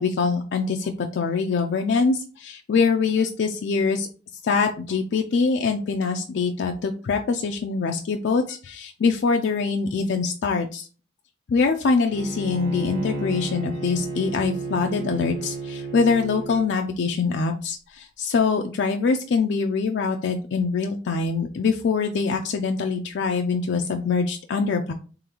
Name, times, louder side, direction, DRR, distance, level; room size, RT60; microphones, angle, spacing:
voice 1, 0.0-4.1 4.4-10.9 11.5-24.9, left 4 dB, 60° left, 4 dB, 0.3 m, -24 dB
Bowed string instrument, 12.1-16.6, right 3 dB, 70° right, 1.6 m, -32 dB
3.8 x 3.2 x 2.9 m, 0.37 s
head